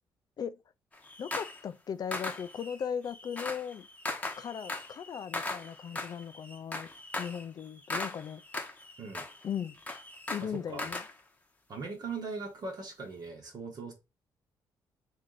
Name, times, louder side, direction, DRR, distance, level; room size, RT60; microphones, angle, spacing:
sound 1, 0.9-1.6 2.1-11.1, left 2 dB, 15° left, 0.9 m, -39 dB
voice 1, 1.2-3.9 4.4-6.9 7.2-8.4 9.4-9.8 10.3-11.0, left 8 dB, 50° left, 0.4 m, -37 dB
voice 2, 10.4-10.9 11.7-13.9, right 4 dB, 50° right, 1.0 m, -40 dB
3.2 x 3.2 x 3.8 m
cardioid pair, 85°, 9 cm